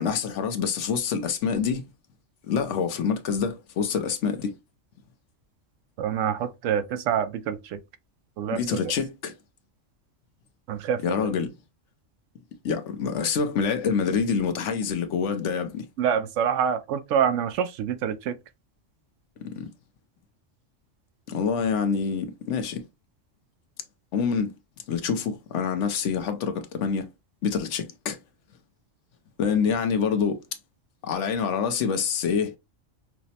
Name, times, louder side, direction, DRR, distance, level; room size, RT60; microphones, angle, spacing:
voice 1, 0.0-1.8 2.5-4.5 8.5-9.3 11.0-11.5 12.6-15.9 19.4-19.7 21.3-22.8 24.1-24.5 24.9-27.1 27.4-28.2 29.4-30.4 31.0-32.6, left 6 dB, 75° left, 1.0 m, -26 dB
voice 2, 6.0-7.8 8.4-8.9 10.7-11.3 16.0-18.4, right 8 dB, 90° right, 0.9 m, -26 dB
5.8 x 2.1 x 2.7 m
omnidirectional pair, 1.3 m